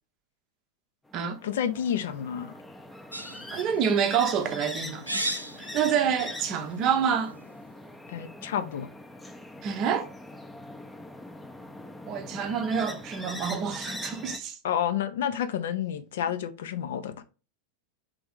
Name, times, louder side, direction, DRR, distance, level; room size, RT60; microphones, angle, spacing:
sound 1, 1.1-14.4, left 1 dB, 10° left, 0.6 m, -42 dB
voice 1, 1.4-2.5 8.1-8.9 14.6-17.2, left 9 dB, 60° left, 0.5 m, -30 dB
sound 2, 3.1-7.6, right 1 dB, 85° right, 0.4 m, -38 dB
voice 2, 3.5-5.4 5.7-7.3 9.6-10.1 12.1-14.6, right 7 dB, 35° right, 0.6 m, -27 dB
3.4 x 3.4 x 3.5 m
figure-of-eight pair, 90°, 0 cm